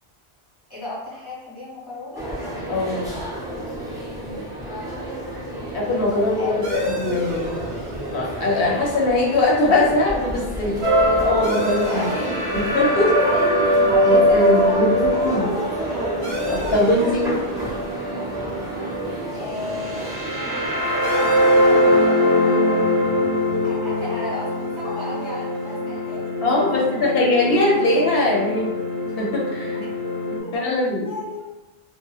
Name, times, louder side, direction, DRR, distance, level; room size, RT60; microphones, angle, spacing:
voice 1, 0.7-2.3 4.2-4.5 6.3-6.6 11.9-12.4 13.2-15.8 16.3-17.5 19.3-20.3 21.0-23.0 23.6-26.4 26.7-27.1 29.7-29.9 30.4-30.8 31.0-31.6, left 1 dB, 25° left, -9 dB, 1.0 m, -34 dB
sound 1, 2.1-22.1, right 1 dB, 5° right, 0.5 m, -31 dB
voice 2, 2.7-3.1 5.7-7.6 8.1-10.8 11.2-12.1 12.5-13.1 13.4-15.5 16.5-17.2 26.4-28.7 29.2-29.8 30.3-31.1, left 2 dB, 65° left, -3 dB, 0.8 m, -21 dB
sound 2, 6.6-25.8, equal, 50° right, 0.6 m, -38 dB
sound 3, 10.8-30.4, equal, 70° right, 0.9 m, -22 dB
2.8 x 2.1 x 2.3 m, 1.0 s
omnidirectional pair, 1.1 m